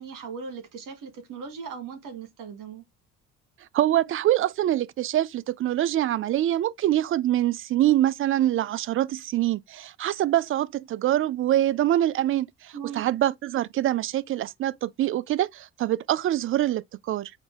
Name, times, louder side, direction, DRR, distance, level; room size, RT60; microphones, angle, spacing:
voice 1, 0.0-2.8 12.7-13.1, right 6 dB, 55° right, 1.7 m, -38 dB
voice 2, 3.7-17.3, right 13 dB, 35° right, 0.4 m, -25 dB
4.9 x 2.6 x 3.6 m
figure-of-eight pair, 50°, 37 cm